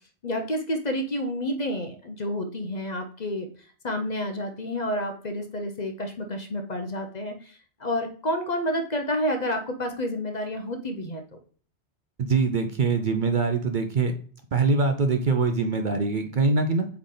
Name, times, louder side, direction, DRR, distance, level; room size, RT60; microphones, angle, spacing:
voice 1, 0.2-3.5 3.8-11.4, equal, 40° left, 5 dB, 0.8 m, -29 dB
voice 2, 12.2-14.1 14.5-16.9, right 4 dB, 50° right, 7 dB, 0.7 m, -23 dB
8.2 x 3.3 x 3.8 m, 0.43 s
omnidirectional pair, 1.2 m